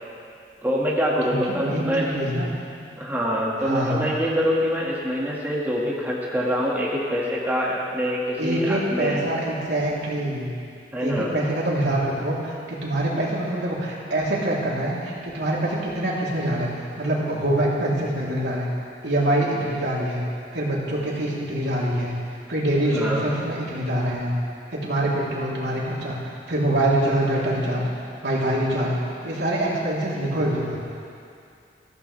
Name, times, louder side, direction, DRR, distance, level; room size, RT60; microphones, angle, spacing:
voice 1, 0.6-2.2 3.0-9.2 10.9-11.3 22.9-23.2, equal, 10° right, -6 dB, 2.0 m, -25 dB
voice 2, 1.3-2.5 3.6-4.1 8.4-10.5 11.0-16.7 17.0-18.7 19.0-20.2 20.5-22.1 22.5-24.3 24.7-27.9 28.2-29.0 29.2-30.8, right 1 dB, 70° right, -5 dB, 3.6 m, -25 dB
22.5 x 15.0 x 3.4 m, 2.4 s
head